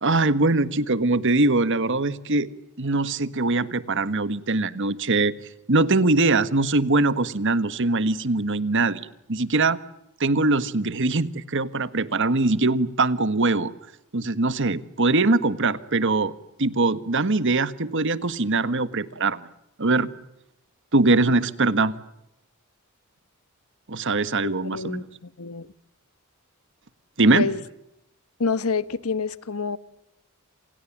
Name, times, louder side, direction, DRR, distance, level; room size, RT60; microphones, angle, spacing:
voice 1, 0.0-2.5 2.8-5.3 5.7-9.8 10.2-13.7 14.1-16.3 16.6-19.4 19.8-20.1 20.9-21.9 23.9-25.0 27.2-27.5, right 2 dB, 60° right, 1.5 m, -22 dB
voice 2, 24.7-25.7 27.3-27.6 28.4-29.8, left 4 dB, 85° left, 1.2 m, -27 dB
28.5 x 28.0 x 7.3 m
head